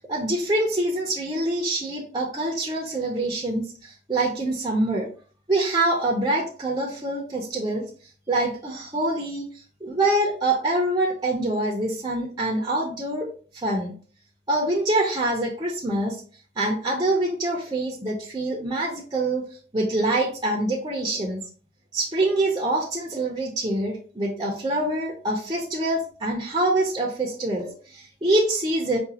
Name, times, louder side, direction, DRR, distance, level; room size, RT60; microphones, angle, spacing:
voice 1, 0.1-5.1 5.5-7.8 8.3-9.5 9.8-13.9 14.5-16.2 16.6-19.4 19.7-21.4 21.9-29.0, right 2 dB, 25° right, -1 dB, 0.6 m, -25 dB
4.8 x 2.3 x 2.8 m, 0.42 s
head